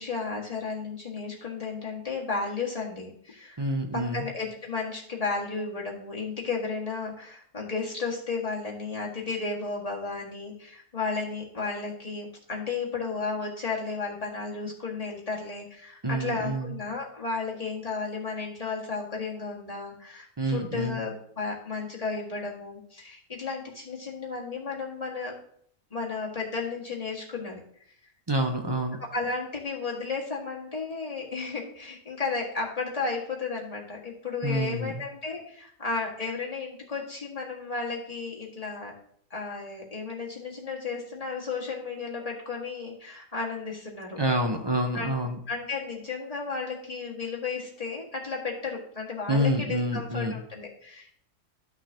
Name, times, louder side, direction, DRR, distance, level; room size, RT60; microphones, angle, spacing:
voice 1, 0.0-3.6 3.9-25.4 25.9-27.6 29.0-38.9 39.3-44.2 44.9-45.1 45.5-51.1, left 4 dB, 25° left, -3 dB, 1.8 m, -33 dB
voice 2, 3.6-4.2 16.0-16.7 20.4-21.0 28.3-29.0 34.4-35.0 44.2-45.4 49.3-50.4, right 1 dB, 35° right, 2 dB, 0.4 m, -27 dB
13.0 x 6.0 x 2.8 m, 0.63 s
omnidirectional pair, 1.6 m